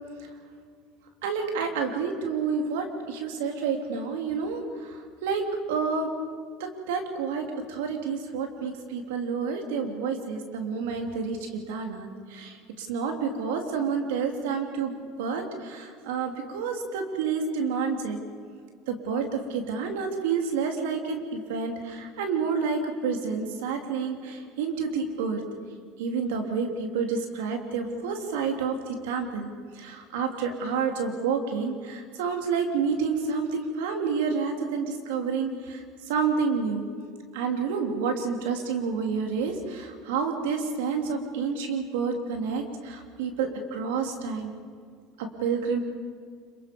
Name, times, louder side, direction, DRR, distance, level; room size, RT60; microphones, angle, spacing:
voice 1, 1.2-5.4 5.7-6.1 6.6-14.9 15.2-18.2 18.9-25.4 26.0-36.9 37.3-44.5 45.2-45.8, right 5 dB, 85° right, 3 dB, 3.3 m, -29 dB
26.5 x 24.0 x 5.4 m, 2.1 s
supercardioid pair, 100°, 0 cm